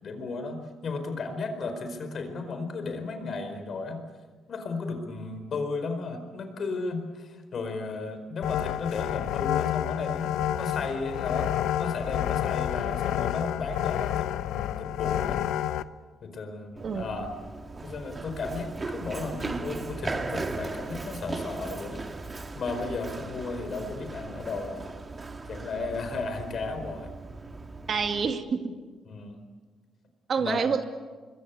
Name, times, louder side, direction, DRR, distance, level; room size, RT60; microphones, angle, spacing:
voice 1, 0.0-4.0 4.5-15.4 16.2-17.3 17.8-22.0 22.5-24.9 25.5-27.1 29.1-29.4 30.4-30.6, left 3 dB, 55° left, 7 dB, 4.8 m, -34 dB
sound 1, 8.4-15.8, left 11 dB, 85° left, 0.7 m, -29 dB
Run, 16.8-28.3, right 3 dB, 25° right, 2.0 m, -38 dB
voice 2, 27.9-28.7 30.3-30.8, right 5 dB, 50° right, 6 dB, 2.2 m, -27 dB
26.0 x 22.0 x 8.4 m, 1.4 s
cardioid pair, 90°, 0 cm